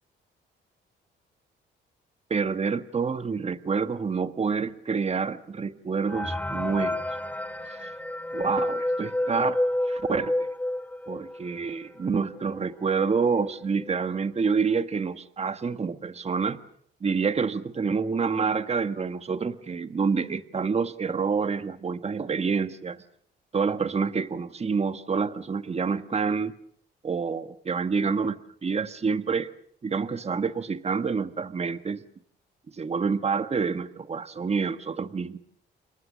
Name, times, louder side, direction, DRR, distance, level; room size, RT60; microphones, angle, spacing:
voice 1, 2.3-7.0 7.7-7.9 8.3-10.5 11.1-16.6 17.0-23.0 23.5-26.5 27.0-29.5 29.8-32.0 32.7-35.4, right 5 dB, 30° right, 11 dB, 1.5 m, -28 dB
sound 1, 6.1-11.5 12.0-12.1 12.3-12.4 13.1-13.2 13.6-13.9, left 1 dB, 10° left, 1.2 m, -29 dB
29.0 x 25.0 x 6.4 m, 0.62 s
cardioid pair, 90°, 20 cm